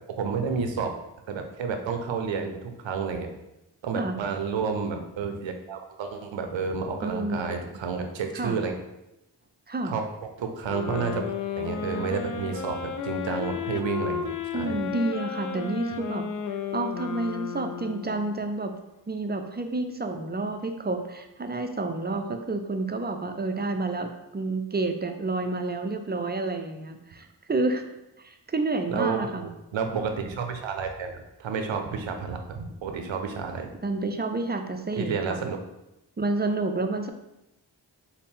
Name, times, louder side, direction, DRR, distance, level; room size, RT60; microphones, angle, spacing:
voice 1, 0.2-0.9 1.3-3.3 3.8-8.7 9.8-10.1 10.4-11.2 11.6-14.8 28.9-33.7 35.0-35.6, right 5 dB, 85° right, 5 dB, 0.6 m, -30 dB
voice 2, 7.0-7.6 8.3-8.6 9.7-9.9 14.5-16.2 16.7-18.7 19.1-27.8 28.2-29.5 33.8-35.1 36.2-37.1, right 2 dB, 25° right, 6 dB, 0.4 m, -29 dB
sound 1, 10.7-18.4, left 7 dB, 45° left, 0.4 m, -33 dB
4.1 x 2.1 x 3.6 m, 0.90 s
cardioid pair, 40°, 45 cm